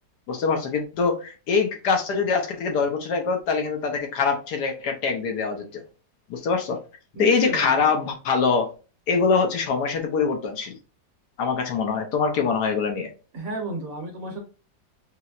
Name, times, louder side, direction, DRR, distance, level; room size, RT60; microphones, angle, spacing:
voice 1, 0.3-5.8 6.3-6.8 7.2-8.7 9.1-10.8 11.4-13.1, left 5 dB, 70° left, 1.3 m, -24 dB
voice 2, 7.1-7.8 13.3-14.4, right 2 dB, 55° right, 1.3 m, -32 dB
5.6 x 2.1 x 2.4 m
omnidirectional pair, 2.0 m